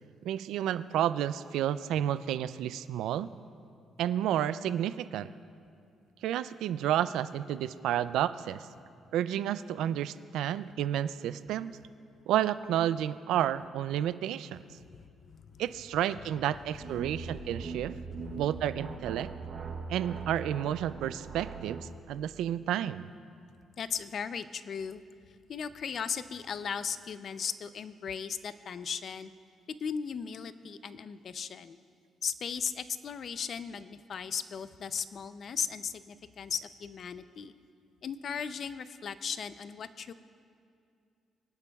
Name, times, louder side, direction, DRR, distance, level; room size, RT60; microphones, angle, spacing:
voice 1, 0.2-3.3 4.0-5.3 6.2-8.6 9.1-11.8 12.3-14.6 15.6-17.9 18.3-19.3 19.9-23.1, right 11 dB, 85° right, 14 dB, 0.3 m, -31 dB
voice 2, 14.9-15.6 18.3-18.4 23.8-25.0 25.5-29.3 29.8-31.8 32.2-37.5 38.0-40.1, left 7 dB, 55° left, 13 dB, 0.5 m, -37 dB
sound 1, 16.7-22.0, right 4 dB, 50° right, 0.8 m, -41 dB
24.0 x 9.9 x 2.3 m, 2.4 s
cardioid pair, 90°, 0 cm